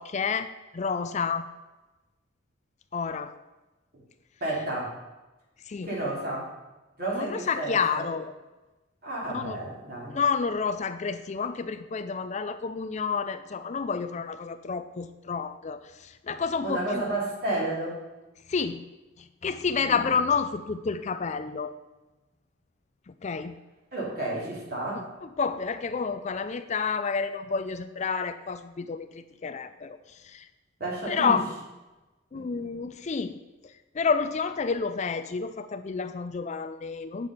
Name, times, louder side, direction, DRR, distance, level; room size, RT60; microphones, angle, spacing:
voice 1, 0.0-1.5 2.9-3.3 5.6-5.9 7.1-8.3 9.3-9.6 10.1-17.2 18.5-18.9 19.2-21.7 23.1-23.6 24.9-30.5 31.1-31.4 32.3-33.4 33.6-37.3, left 5 dB, 35° left, 11 dB, 0.4 m, -30 dB
voice 2, 4.4-5.0 5.8-6.5 7.0-8.1 9.0-10.2 16.6-18.0 19.9-20.0 23.9-25.1 30.8-31.4 32.3-32.7, right 2 dB, 50° right, -4 dB, 3.3 m, -31 dB
8.9 x 6.7 x 5.6 m, 1.1 s
head